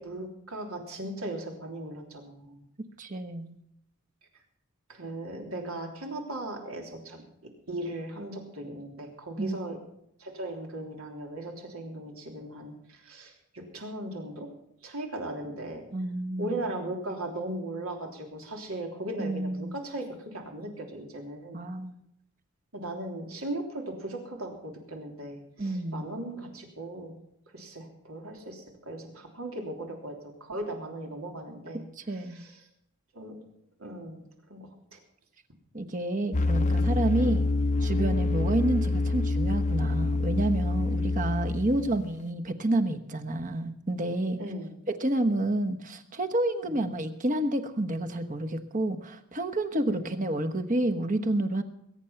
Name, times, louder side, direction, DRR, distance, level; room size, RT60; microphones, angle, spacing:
voice 1, 0.0-2.7 4.9-7.2 7.7-9.8 10.2-14.5 14.8-15.8 16.4-21.6 22.7-27.1 27.5-31.8 32.1-32.7 33.1-33.3 33.8-34.2 34.5-35.0 37.2-37.3 41.8-41.9 44.4-44.7 46.6-46.8 49.9-50.0, right 1 dB, 85° right, 1 dB, 3.3 m, -38 dB
voice 2, 3.0-3.5 9.4-9.6 15.9-16.6 19.2-19.7 21.5-21.9 25.6-26.0 32.0-32.4 35.7-37.4 37.8-44.4 44.9-51.6, right 1 dB, 35° right, 6 dB, 1.1 m, -29 dB
sound 1, 36.3-42.1, left 2 dB, 35° left, 0.7 m, -26 dB
21.0 x 8.9 x 5.8 m, 0.77 s
head